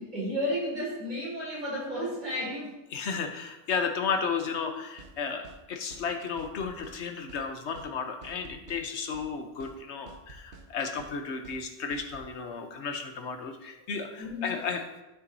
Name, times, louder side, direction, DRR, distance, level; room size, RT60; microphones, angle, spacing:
voice 1, 0.0-2.7 14.2-14.6, equal, 40° right, -7 dB, 3.6 m, -32 dB
voice 2, 2.9-14.8, left 5 dB, 75° left, 6 dB, 1.1 m, -33 dB
sound 1, 5.0-5.1 5.4-5.6 5.9-6.1 6.4-7.0 7.3-7.4 7.7-7.9 8.2-8.8 9.1-9.3 9.6-9.8 10.1-10.7 11.0-11.1 11.4-11.6 11.9-12.3, right 3 dB, 70° right, 1.1 m, -49 dB
12.5 x 6.1 x 2.7 m, 0.97 s
omnidirectional pair, 1.2 m